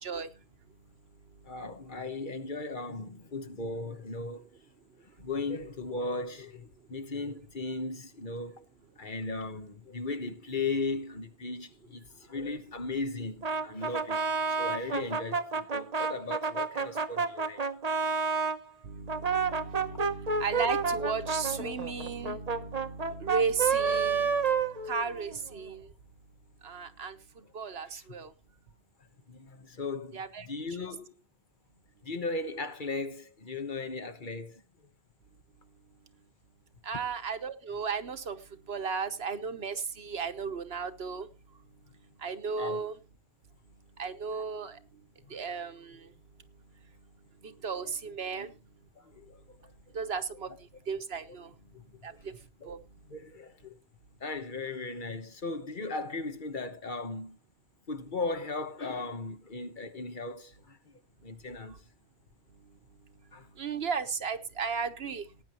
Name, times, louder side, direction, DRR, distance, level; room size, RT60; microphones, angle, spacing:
voice 1, 1.4-4.5 5.2-8.6 9.0-17.6 27.9-28.0 29.3-31.2 32.0-34.6 42.5-42.8 47.8-47.9 48.3-48.5 49.0-49.7 51.7-51.8 52.1-52.2 52.6-52.7 53.1-53.8 54.2-57.4 57.9-60.9 61.2-61.8 63.3-63.5, left 3 dB, 50° left, 1.2 m, -37 dB
Brass instrument, 13.4-18.6 19.1-25.4, right 5 dB, 40° right, 0.9 m, -30 dB
voice 2, 18.8-24.4 24.9-25.8 26.6-27.1 27.5-28.3 30.1-30.5 36.9-38.4 38.7-41.3 42.2-42.9 44.0-44.7 45.3-45.8 47.6-48.5 49.9-50.5 50.9-51.5 52.0-52.1 52.7-52.8 63.6-65.2, right 5 dB, 70° right, 1.3 m, -34 dB
18.5 x 9.4 x 3.0 m
omnidirectional pair, 1.1 m